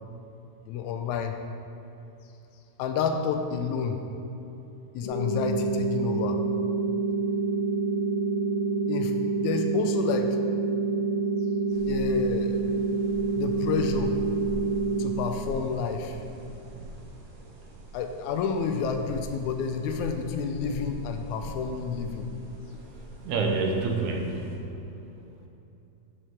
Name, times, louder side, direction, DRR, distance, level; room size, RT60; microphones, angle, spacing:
voice 1, 0.7-1.3 2.8-4.0 4.9-6.4 8.9-10.4 11.9-12.6 13.4-14.2 15.0-16.2 17.9-22.3, left 6 dB, 80° left, 6 dB, 1.9 m, -29 dB
sound 1, 5.0-15.0, right 4 dB, 45° left, 2.2 m, -27 dB
sound 2, 11.7-24.6, right 1 dB, 55° right, 2.0 m, -42 dB
voice 2, 22.9-24.7, right 3 dB, 75° right, 1 dB, 2.1 m, -28 dB
10.5 x 4.9 x 4.7 m, 2.8 s
omnidirectional pair, 3.5 m